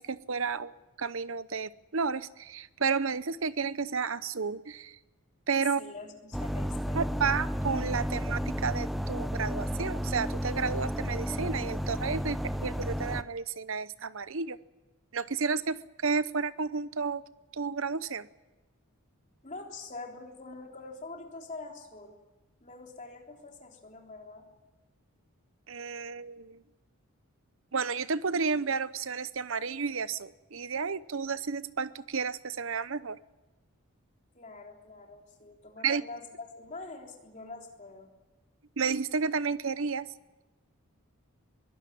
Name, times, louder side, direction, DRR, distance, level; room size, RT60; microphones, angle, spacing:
voice 1, 0.0-5.0 5.5-5.8 6.9-14.6 15.1-17.2 17.5-18.3 25.7-26.6 27.7-33.2 35.8-36.0 38.8-40.1, right 5 dB, 65° right, 16 dB, 0.8 m, -32 dB
voice 2, 5.8-7.0 19.4-22.2 22.6-24.5 34.3-38.1, left 3 dB, 35° left, 1 dB, 3.5 m, -45 dB
sound 1, 6.3-13.2, equal, ahead, 0.7 m, -32 dB
22.0 x 17.0 x 9.4 m, 1.1 s
head